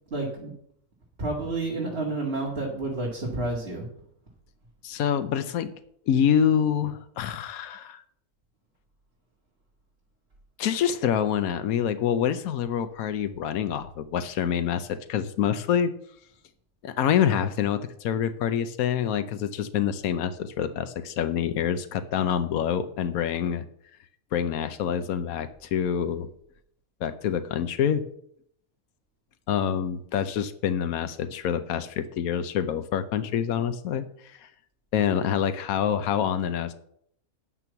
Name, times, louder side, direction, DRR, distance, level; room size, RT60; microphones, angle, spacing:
voice 1, 0.1-0.5 1.2-3.9, right 2 dB, 45° right, -3 dB, 2.2 m, -30 dB
voice 2, 4.8-5.7 6.1-8.0 10.6-15.9 16.8-23.6 24.3-26.3 27.0-28.0 29.5-34.1 34.4-34.5 34.9-36.7, left 9 dB, 85° left, 10 dB, 1.2 m, -26 dB
9.6 x 6.1 x 6.9 m, 0.68 s
omnidirectional pair, 1.5 m